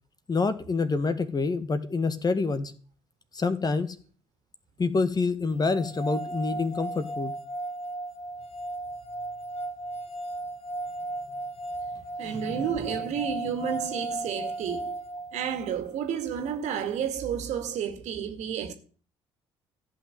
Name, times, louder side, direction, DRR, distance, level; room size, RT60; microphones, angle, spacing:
voice 1, 0.3-2.7 3.3-4.0 4.8-7.3, left 4 dB, 30° left, 1.8 m, -27 dB
sound 1, 5.6-15.8, right 2 dB, 50° left, 1.7 m, -35 dB
voice 2, 12.2-14.9 15.3-18.7, right 8 dB, 60° right, 2.3 m, -31 dB
14.5 x 6.2 x 9.4 m
figure-of-eight pair, 50°, 13 cm